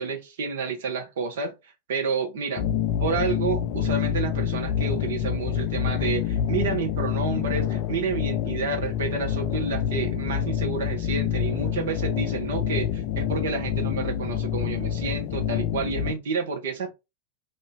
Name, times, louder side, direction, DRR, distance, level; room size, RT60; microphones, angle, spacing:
voice 1, 0.0-2.7 3.0-16.9, right 5 dB, 60° right, 0.8 m, -30 dB
sound 1, 2.6-16.1, left 9 dB, 45° left, 0.3 m, -27 dB
2.6 x 2.2 x 3.6 m
figure-of-eight pair, 90°, 0 cm